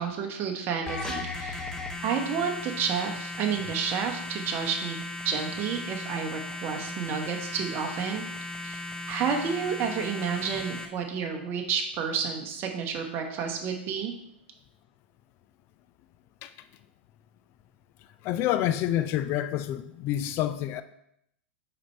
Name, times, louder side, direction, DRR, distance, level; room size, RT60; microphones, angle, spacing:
voice 1, 0.0-1.6 2.0-5.0 5.2-8.2 8.6-8.8 9.1-14.1, right 6 dB, 35° right, 1.0 m, -30 dB
sound 1, 0.9-10.9, left 2 dB, 10° left, 0.8 m, -37 dB
voice 2, 18.2-20.8, left 12 dB, 40° left, 0.4 m, -28 dB
5.1 x 4.2 x 4.5 m
hypercardioid pair, 100°, 6 cm